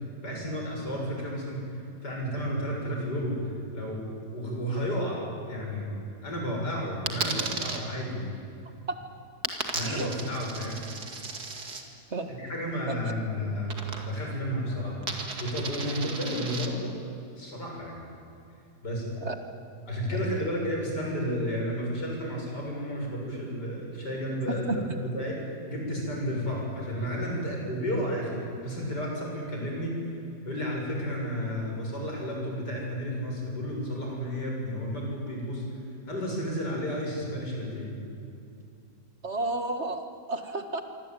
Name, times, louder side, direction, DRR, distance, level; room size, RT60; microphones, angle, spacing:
voice 1, 0.2-4.0 4.3-8.2 9.7-10.8 12.4-15.0 15.4-16.9 17.4-18.0 18.8-19.1 19.9-24.9 25.1-25.4 25.7-30.2 30.5-35.6 36.1-38.0, equal, 85° left, -1 dB, 7.7 m, -32 dB
Coin (dropping), 7.1-7.8 9.4-11.8 13.7-14.3 14.6-16.7, right 3 dB, 70° right, 2.9 m, -35 dB
voice 2, 24.5-24.9 39.2-40.8, right 2 dB, 45° right, 7 dB, 1.9 m, -32 dB
26.5 x 24.5 x 9.2 m, 2.6 s
omnidirectional pair, 1.7 m